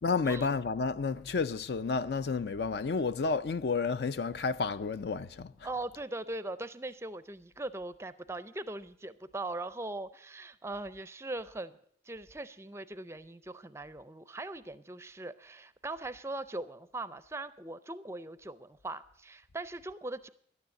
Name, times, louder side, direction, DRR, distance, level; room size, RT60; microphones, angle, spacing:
voice 1, 0.0-5.7, left 4 dB, 65° left, 0.4 m, -31 dB
voice 2, 5.6-11.7 12.1-20.3, right 2 dB, 15° right, 0.4 m, -40 dB
12.0 x 9.6 x 7.5 m
head